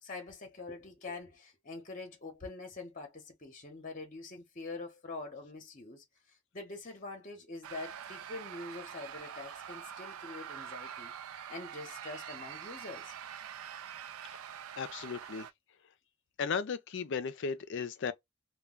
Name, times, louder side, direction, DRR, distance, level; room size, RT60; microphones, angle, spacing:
voice 1, 0.0-13.1, left 3 dB, 40° left, 0.8 m, -45 dB
sound 1, 7.6-15.5, right 9 dB, 90° right, 0.4 m, -45 dB
voice 2, 14.8-15.5 16.4-18.1, left 5 dB, 60° left, 0.4 m, -35 dB
2.3 x 2.2 x 3.5 m
head